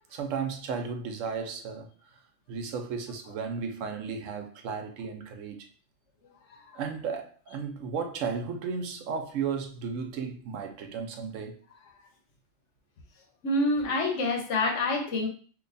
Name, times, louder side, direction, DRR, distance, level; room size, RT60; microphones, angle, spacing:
voice 1, 0.1-2.2 2.5-5.7 6.7-11.6, right 5 dB, 90° right, 1.0 m, -34 dB
voice 2, 13.4-15.3, left 2 dB, 70° left, 1.1 m, -26 dB
3.0 x 2.2 x 3.9 m
omnidirectional pair, 1.3 m